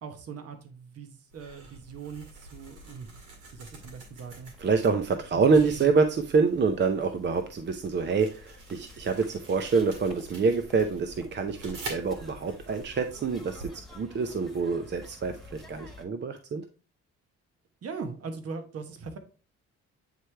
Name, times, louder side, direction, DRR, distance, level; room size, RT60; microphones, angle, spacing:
voice 1, 0.0-3.1 3.5-4.5 5.5-5.9 17.8-19.2, right 5 dB, 50° right, 6 dB, 1.1 m, -40 dB
sound 1, 1.3-13.7, right 2 dB, 90° right, 2.0 m, -47 dB
sound 2, 3.6-16.1, left 2 dB, ahead, 1.4 m, -52 dB
voice 2, 4.6-16.6, right 4 dB, 35° right, 7 dB, 0.6 m, -26 dB
9.1 x 3.2 x 3.3 m, 0.36 s
cardioid pair, 90°, 30 cm